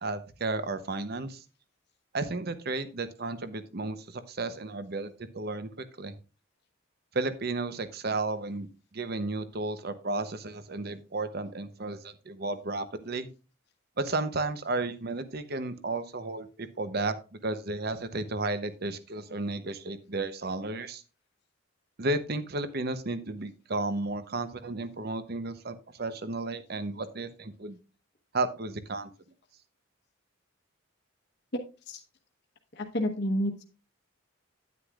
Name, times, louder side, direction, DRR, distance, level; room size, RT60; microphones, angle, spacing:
voice 1, 0.0-1.4 2.1-6.1 7.1-8.7 8.9-13.3 14.0-21.0 22.0-27.8 28.3-29.1, right 2 dB, 50° right, 12 dB, 0.8 m, -33 dB
voice 2, 31.5-32.0 32.8-33.6, equal, 55° left, 2 dB, 1.1 m, -30 dB
9.8 x 9.5 x 2.4 m, 0.33 s
head